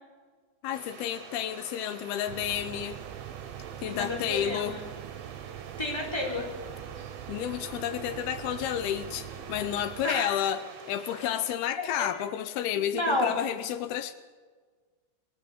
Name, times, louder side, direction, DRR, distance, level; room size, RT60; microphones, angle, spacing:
voice 1, 0.6-3.0 3.8-4.8 7.3-10.6 10.9-14.1, left 10 dB, 85° left, 12 dB, 2.8 m, -31 dB
sound 1, 0.7-11.6, right 6 dB, 60° right, 3.0 m, -47 dB
sound 2, 2.3-10.1, right 11 dB, 80° right, 2.6 m, -42 dB
voice 2, 3.8-4.8 5.8-6.5 10.0-10.4 11.8-12.1 12.7-13.3, left 1 dB, 5° left, -1 dB, 3.9 m, -31 dB
22.0 x 14.5 x 8.2 m, 1.5 s
omnidirectional pair, 4.4 m